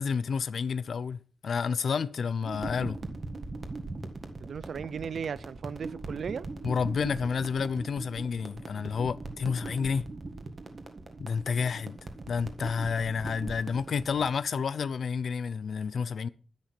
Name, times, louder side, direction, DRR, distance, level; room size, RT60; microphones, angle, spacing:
voice 1, 0.0-3.0 6.6-10.0 11.2-12.0 12.3-16.3, left 6 dB, 60° left, 0.5 m, -30 dB
sound 1, 2.4-14.4, right 3 dB, 35° right, 1.7 m, -41 dB
voice 2, 4.4-6.5, right 6 dB, 60° right, 0.5 m, -36 dB
11.0 x 10.5 x 6.0 m
wide cardioid pair, 170°, 0 cm